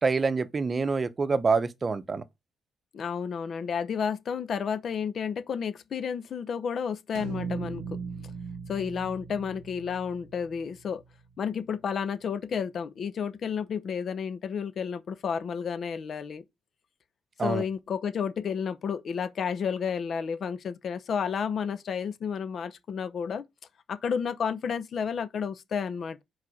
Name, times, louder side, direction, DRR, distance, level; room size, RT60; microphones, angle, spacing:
voice 1, 0.0-2.2 17.4-17.6, right 4 dB, 35° right, 0.8 m, -26 dB
voice 2, 2.9-8.0 8.7-11.0 11.4-16.4 17.4-23.4 23.9-26.2, left 7 dB, 55° left, 0.7 m, -31 dB
sound 1, 7.2-11.4, right 5 dB, 85° right, 0.7 m, -39 dB
4.8 x 4.2 x 4.8 m
cardioid pair, 90°, 0 cm